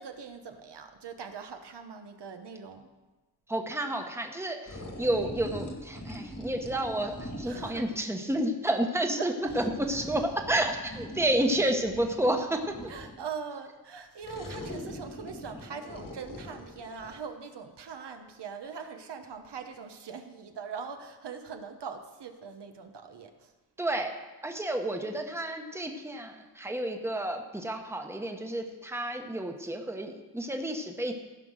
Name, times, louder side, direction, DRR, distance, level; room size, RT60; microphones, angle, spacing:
voice 1, 0.0-2.9 7.4-7.9 9.2-10.0 11.2-11.3 12.9-23.5, right 6 dB, 80° right, 6 dB, 1.1 m, -42 dB
voice 2, 3.5-12.9 23.8-24.2 24.4-31.1, right 1 dB, 5° right, 4 dB, 1.0 m, -30 dB
sound 1, 4.7-8.0 9.4-13.3 14.2-17.2, left 1 dB, 50° left, 2.0 m, -42 dB
15.0 x 5.6 x 6.4 m, 1.2 s
wide cardioid pair, 125°, 41 cm